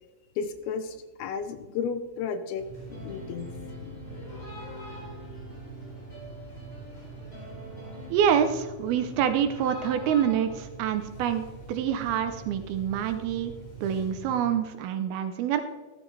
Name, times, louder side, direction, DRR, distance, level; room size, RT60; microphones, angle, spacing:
voice 1, 0.4-3.5 3.8-4.0, left 6 dB, 80° left, 10 dB, 2.5 m, -33 dB
sound 1, 2.6-14.4, right 3 dB, 55° left, 6.0 m, -43 dB
sound 2, 2.9-8.1, left 2 dB, 15° left, 4.1 m, -45 dB
voice 2, 8.1-13.5 13.8-15.6, right 8 dB, 80° right, 9 dB, 2.4 m, -26 dB
14.0 x 13.0 x 3.3 m, 1.3 s
omnidirectional pair, 4.8 m